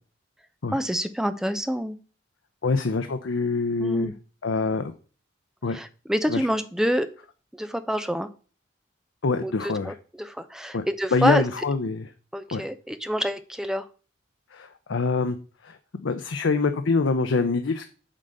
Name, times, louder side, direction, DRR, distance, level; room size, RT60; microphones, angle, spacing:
voice 1, 0.7-2.0 3.8-4.1 5.7-7.1 7.5-8.3 9.4-11.4 12.3-13.9, equal, 5° right, 10 dB, 0.5 m, -27 dB
voice 2, 2.6-4.1 4.4-4.9 5.6-5.8 6.3-6.5 9.2-9.9 10.7-10.8 11.1-12.1 12.5-12.6 14.5-15.4 15.6-17.9, left 4 dB, 85° left, 8 dB, 0.6 m, -25 dB
7.5 x 3.9 x 6.5 m, 0.37 s
head